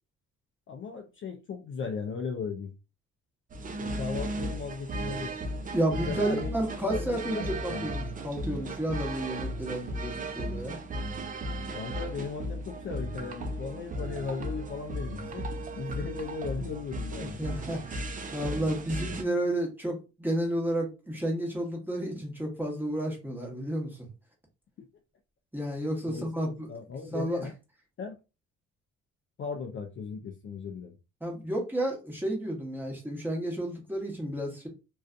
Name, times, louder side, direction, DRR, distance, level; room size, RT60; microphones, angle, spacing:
voice 1, 0.7-2.7 3.8-5.4 6.0-6.5 6.9-7.9 11.7-15.5 15.8-17.4 26.0-27.5 28.0-28.2 29.4-31.0, left 5 dB, 40° left, 0.4 m, -37 dB
sound 1, 3.5-19.2, right 1 dB, 30° right, 0.4 m, -36 dB
voice 2, 5.7-10.8 17.2-18.0 18.3-23.9 25.5-26.7 27.1-27.4 31.2-34.7, right 1 dB, 5° right, 1.0 m, -31 dB
2.5 x 2.3 x 2.4 m
cardioid pair, 90°, 30 cm